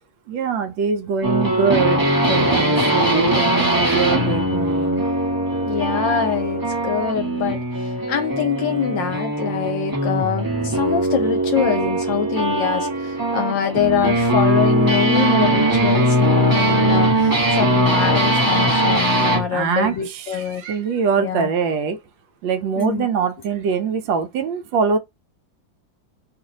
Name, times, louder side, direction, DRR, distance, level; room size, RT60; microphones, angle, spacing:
voice 1, 0.3-5.1 19.5-22.0 22.4-25.0, right 6 dB, 75° right, 1.3 m, -23 dB
sound 1, 1.2-19.5, right 1 dB, 15° right, 0.7 m, -20 dB
voice 2, 2.5-2.9 5.6-7.6 8.1-20.6 21.2-21.5 22.8-23.1, left 8 dB, 75° left, 1.2 m, -24 dB
3.1 x 2.5 x 3.8 m
omnidirectional pair, 2.1 m